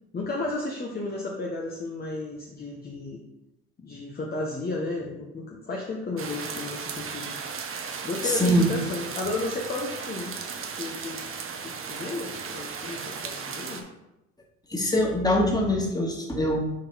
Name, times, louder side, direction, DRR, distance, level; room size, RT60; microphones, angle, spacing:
voice 1, 0.1-3.2 3.8-7.3 8.0-10.4 10.7-11.3 11.6-13.8, left 2 dB, 30° left, -2 dB, 1.1 m, -33 dB
sound 1, 6.2-13.8, right 6 dB, 40° right, 1.0 m, -36 dB
voice 2, 8.2-8.7 14.7-16.6, equal, 10° left, -1 dB, 2.0 m, -23 dB
6.4 x 4.1 x 4.1 m, 0.92 s
hypercardioid pair, 70°, 33 cm